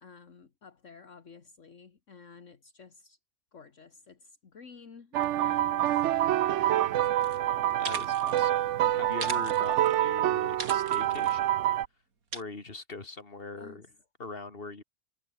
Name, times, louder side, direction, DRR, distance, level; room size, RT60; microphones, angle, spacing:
voice 1, 0.0-3.2 3.5-6.1 6.4-7.3 13.5-13.9, left 5 dB, 60° left, 2.0 m, -52 dB
sound 1, 5.1-11.9, right 13 dB, 65° right, 0.9 m, -26 dB
sound 2, 7.2-7.4 7.7-8.4 9.1-10.0 10.6-11.4 12.3-12.4, right 4 dB, 90° right, 3.1 m, -39 dB
voice 2, 7.8-11.6 12.3-13.9 14.2-14.8, left 3 dB, 40° left, 3.1 m, -42 dB
omnidirectional pair, 1.5 m